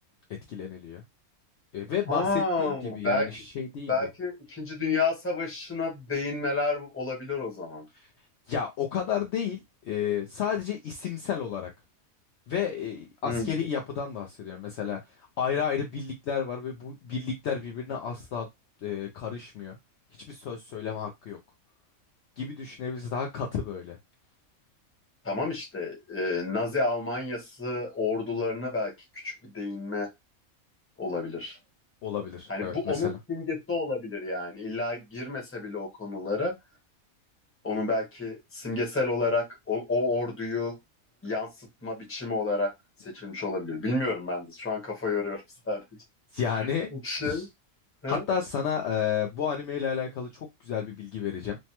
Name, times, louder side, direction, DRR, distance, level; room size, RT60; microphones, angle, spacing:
voice 1, 0.5-1.0 1.7-4.1 8.0-8.1 8.5-11.7 12.5-18.5 18.8-19.8 20.3-21.4 22.4-24.0 32.0-33.2 46.3-46.9 47.2-47.5 48.1-51.6, left 7 dB, 65° left, 0.7 m, -32 dB
voice 2, 2.1-3.3 3.9-7.8 13.2-13.5 25.2-28.9 29.2-30.1 31.0-31.6 32.5-36.5 37.6-40.7 41.2-42.7 43.0-45.8 46.6-47.5 48.0-48.2, left 3 dB, 10° left, 0.8 m, -30 dB
3.2 x 2.1 x 2.8 m
omnidirectional pair, 1.5 m